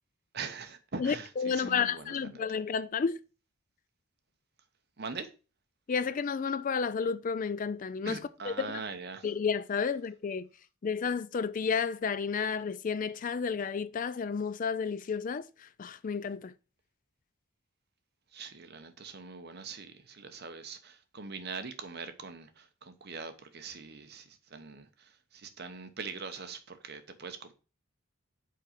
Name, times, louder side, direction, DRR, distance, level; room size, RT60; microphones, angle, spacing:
voice 1, 0.3-2.4 5.0-5.3 8.0-9.3 18.3-27.5, right 4 dB, 50° right, 1.0 m, -42 dB
voice 2, 1.0-3.2 5.9-8.2 8.5-8.8 9.2-10.5 10.8-16.5, left 6 dB, 40° left, 0.3 m, -31 dB
5.6 x 5.0 x 5.7 m
head